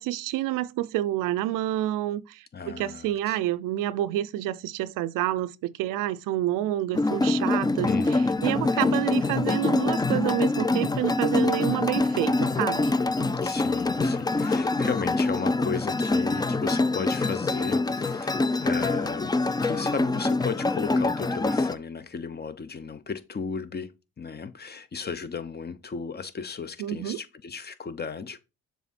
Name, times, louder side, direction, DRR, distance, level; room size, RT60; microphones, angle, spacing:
voice 1, 0.0-12.9 26.8-27.2, right 14 dB, 85° right, 0.5 m, -28 dB
voice 2, 2.5-3.4 7.8-8.6 13.4-19.4 19.6-23.9 24.2-28.4, left 5 dB, 30° left, 0.8 m, -35 dB
sound 1, 6.9-21.8, left 2 dB, 15° left, 0.4 m, -25 dB
6.9 x 3.6 x 4.2 m
cardioid pair, 70°, 31 cm